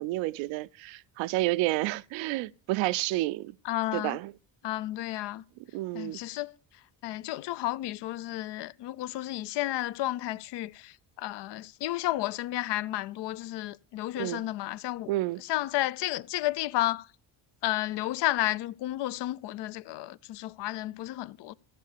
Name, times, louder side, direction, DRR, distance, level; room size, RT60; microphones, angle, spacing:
voice 1, 0.0-3.6 3.9-4.3 5.7-6.2 14.2-14.4 15.1-15.4, right 18 dB, 80° right, 0.5 m, -30 dB
voice 2, 3.6-4.2 4.6-5.4 5.9-6.5 7.0-15.1 15.4-17.1 17.6-21.5, left 15 dB, 65° left, 0.5 m, -32 dB
14.5 x 5.6 x 6.6 m
cardioid pair, 105°, 45 cm